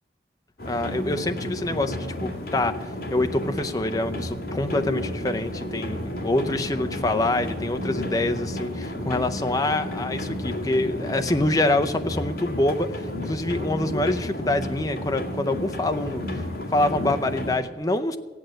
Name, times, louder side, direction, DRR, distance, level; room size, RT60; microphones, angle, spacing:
sound 1, 0.6-17.6, left 1 dB, 55° left, 2.0 m, -32 dB
voice 1, 0.6-2.8 3.1-16.4 16.7-18.2, left 2 dB, 20° left, 7 dB, 0.6 m, -26 dB
15.5 x 8.4 x 7.7 m, 1.4 s
head